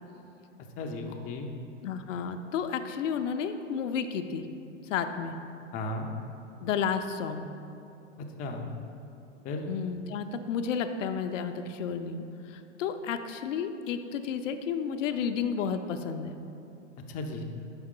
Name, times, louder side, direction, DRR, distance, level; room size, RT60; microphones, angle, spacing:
voice 1, 0.8-1.5 5.7-6.1 8.2-8.7 9.4-9.6 17.1-17.4, left 2 dB, 25° left, 3 dB, 0.4 m, -35 dB
voice 2, 1.8-4.5 4.9-5.4 6.6-7.5 9.7-16.4, left 7 dB, 85° left, 8 dB, 0.5 m, -32 dB
5.4 x 4.8 x 3.7 m, 2.7 s
hypercardioid pair, 115°, 37 cm